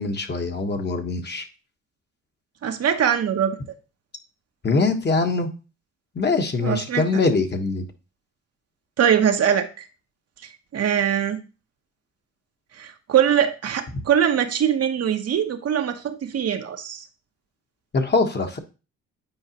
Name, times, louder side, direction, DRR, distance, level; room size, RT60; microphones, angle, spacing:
voice 1, 0.0-1.5 4.6-5.5 6.1-7.8 17.9-18.6, left 3 dB, 35° left, 5 dB, 1.2 m, -23 dB
voice 2, 2.6-3.6 6.6-7.0 9.0-9.9 10.7-11.4 12.8-17.0, right 9 dB, 55° right, 6 dB, 0.9 m, -22 dB
8.8 x 4.7 x 2.9 m, 0.32 s
cardioid pair, 90°, 30 cm